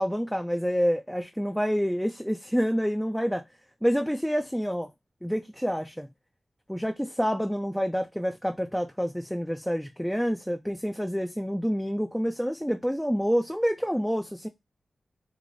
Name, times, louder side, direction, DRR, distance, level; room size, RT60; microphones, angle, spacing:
voice 1, 0.0-3.4 3.8-4.9 5.2-6.1 6.7-14.5, equal, ahead, 0.4 m, -28 dB
3.1 x 2.0 x 3.7 m
wide cardioid pair, 75°, 0 cm